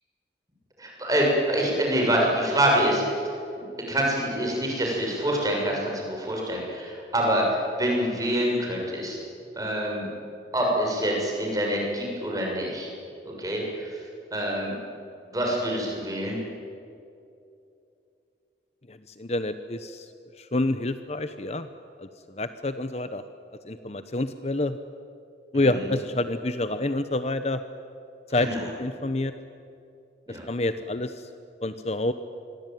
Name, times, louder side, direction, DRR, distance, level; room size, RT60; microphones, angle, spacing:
voice 1, 0.8-3.0 3.5-3.6 3.9-7.5 7.8-9.2 9.6-10.1 10.5-12.9 13.2-14.0 14.3-14.7 15.3-16.4 25.5-25.7 28.3-28.6 30.3-30.4, right 1 dB, 20° right, -1 dB, 6.9 m, -26 dB
voice 2, 18.9-20.1 20.4-21.7 22.0-23.2 23.6-24.8 25.5-27.6 28.3-29.3 30.3-31.3 31.6-32.1, left 2 dB, 35° left, 10 dB, 0.9 m, -28 dB
26.5 x 22.5 x 9.3 m, 2.6 s
head